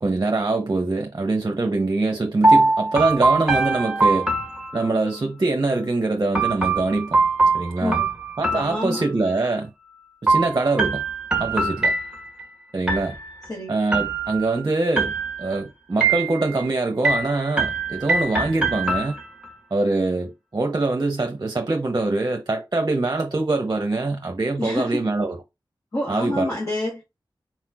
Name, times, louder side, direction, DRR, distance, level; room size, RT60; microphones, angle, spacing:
voice 1, 0.0-4.3 4.7-7.2 7.5-8.0 8.4-9.7 10.2-11.0 11.4-11.9 12.7-13.1 13.7-15.1 15.4-19.1 19.7-25.4 26.1-26.5, right 2 dB, 40° right, 0.8 m, -23 dB
sound 1, 2.4-5.2 6.3-9.4 10.3-12.5 12.9-13.5 13.9-14.6 15.0-15.6 16.0-16.7 17.0-19.5, right 3 dB, 10° right, 1.4 m, -22 dB
voice 2, 7.8-8.1 8.5-9.1 13.5-13.8 24.6-25.0 25.9-27.0, left 1 dB, 40° left, 1.9 m, -27 dB
4.4 x 4.3 x 2.3 m
wide cardioid pair, 90°, 8 cm